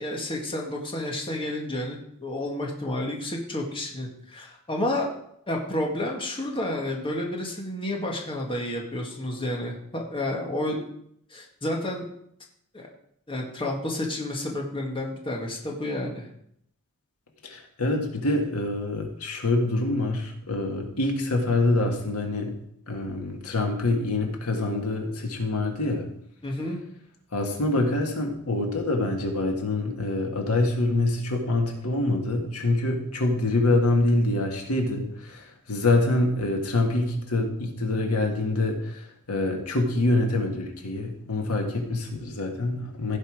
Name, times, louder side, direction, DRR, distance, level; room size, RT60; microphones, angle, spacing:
voice 1, 0.0-5.1 5.5-10.9 11.3-12.1 12.7-12.9 13.3-16.2 26.4-26.8, left 1 dB, 25° left, 0 dB, 1.8 m, -30 dB
voice 2, 17.4-22.5 22.9-26.1 27.3-43.2, left 2 dB, 80° left, 2 dB, 1.8 m, -25 dB
16.0 x 5.5 x 4.9 m, 0.72 s
head